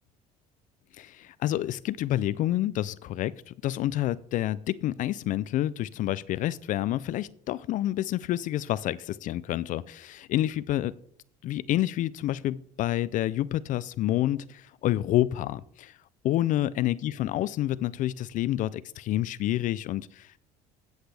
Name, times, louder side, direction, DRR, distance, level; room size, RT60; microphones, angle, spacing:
voice 1, 1.0-10.9 11.4-16.0 16.2-20.4, left 14 dB, 55° left, 19 dB, 0.4 m, -28 dB
14.5 x 8.1 x 3.4 m, 0.67 s
supercardioid pair, 95°, 16 cm